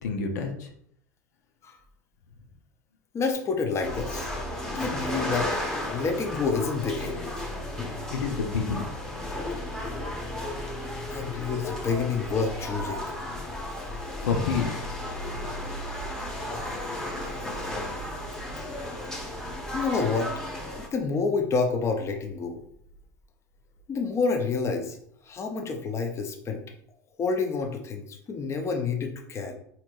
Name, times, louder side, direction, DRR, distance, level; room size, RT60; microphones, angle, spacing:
voice 1, 0.0-0.7 8.1-8.9 14.2-14.9, left 5 dB, 70° left, 3 dB, 0.7 m, -28 dB
voice 2, 3.1-4.3 4.7-5.6 5.9-7.2 11.1-13.1 19.7-20.3 20.8-22.6 23.9-25.0 25.3-26.6 27.2-29.6, left 4 dB, 30° left, 4 dB, 0.8 m, -28 dB
sound 1, 3.8-20.9, left 1 dB, 5° left, 1.0 m, -34 dB
4.4 x 4.0 x 2.5 m, 0.68 s
hypercardioid pair, 80°, 10 cm